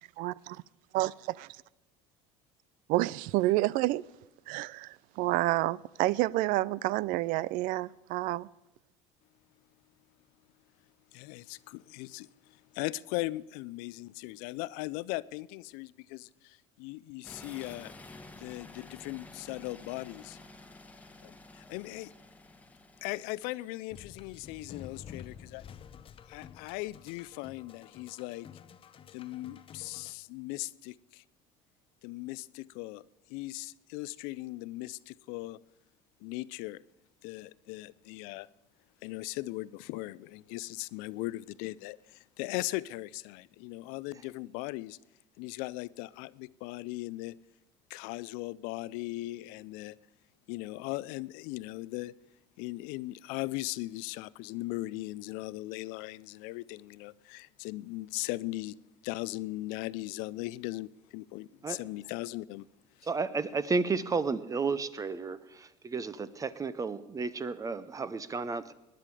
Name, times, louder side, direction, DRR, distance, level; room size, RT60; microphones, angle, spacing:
voice 1, 2.9-4.0 4.5-8.5, right 18 dB, 65° right, 0.4 m, -29 dB
voice 2, 11.1-17.9 18.4-20.4 21.2-22.1 23.0-25.6 26.3-28.5 29.1-31.2 32.0-33.0 33.3-35.6 36.2-36.8 37.2-38.5 39.0-45.0 45.4-47.4 47.9-50.0 50.5-52.1 52.6-58.8 59.0-62.7, left 19 dB, 75° left, 0.5 m, -38 dB
sound 1, 17.2-23.8, left 2 dB, 10° left, 1.3 m, -51 dB
sound 2, 23.9-30.1, left 8 dB, 35° left, 0.8 m, -50 dB
voice 3, 63.1-68.7, right 4 dB, 25° right, 0.8 m, -32 dB
19.5 x 10.5 x 4.9 m
supercardioid pair, 100°, 15 cm